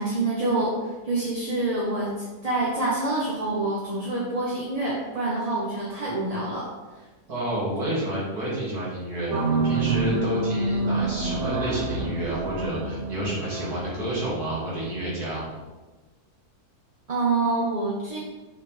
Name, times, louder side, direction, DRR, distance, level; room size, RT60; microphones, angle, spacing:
voice 1, 0.0-6.7 6.9-7.0 17.1-18.2, right 2 dB, 30° right, -5 dB, 1.0 m, -26 dB
voice 2, 7.3-15.4, right 1 dB, 75° right, -7 dB, 3.0 m, -29 dB
sound 1, 9.3-15.6, right 3 dB, 60° right, 0.9 m, -28 dB
6.5 x 5.7 x 3.4 m, 1.2 s
omnidirectional pair, 1.7 m